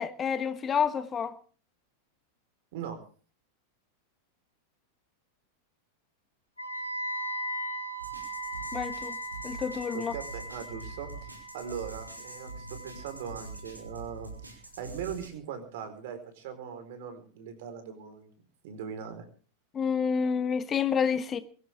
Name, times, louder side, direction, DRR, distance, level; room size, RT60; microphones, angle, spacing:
voice 1, 0.0-1.3 8.7-9.2 9.4-10.1 19.7-21.4, left 7 dB, 25° left, 1.2 m, -29 dB
Wind instrument woodwind instrument, 6.6-14.5, right 1 dB, 85° left, 5.1 m, -39 dB
sound 1, 8.0-15.3, right 2 dB, 85° right, 5.3 m, -45 dB
voice 2, 9.9-18.3 18.6-19.2, right 7 dB, 50° right, 4.5 m, -40 dB
23.0 x 15.0 x 3.6 m
figure-of-eight pair, 90°, 0 cm